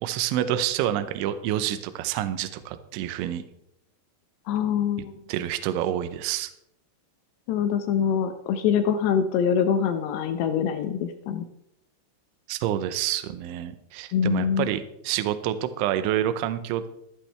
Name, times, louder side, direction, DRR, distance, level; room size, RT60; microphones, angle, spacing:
voice 1, 0.0-3.4 5.0-6.5 12.5-16.9, right 11 dB, 80° right, 10 dB, 3.1 m, -28 dB
voice 2, 4.5-5.1 7.5-11.4 14.1-14.7, left 8 dB, 80° left, 8 dB, 2.4 m, -24 dB
14.5 x 13.0 x 3.4 m, 0.79 s
omnidirectional pair, 5.7 m